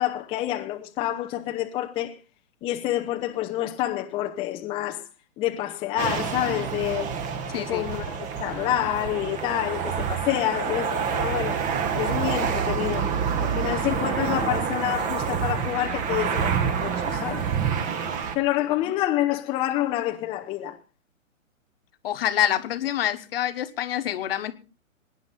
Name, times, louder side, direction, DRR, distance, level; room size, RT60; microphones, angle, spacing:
voice 1, 0.0-2.2 2.6-5.1 5.4-7.1 7.6-11.6 11.9-13.1 13.4-17.5 18.3-20.8, left 13 dB, 15° left, 0.7 m, -28 dB
sound 1, 6.0-18.4, right 7 dB, 20° right, 1.2 m, -27 dB
voice 2, 7.5-7.9 22.0-24.5, left 11 dB, 45° left, 1.4 m, -26 dB
22.5 x 10.0 x 4.0 m
figure-of-eight pair, 125°, 41 cm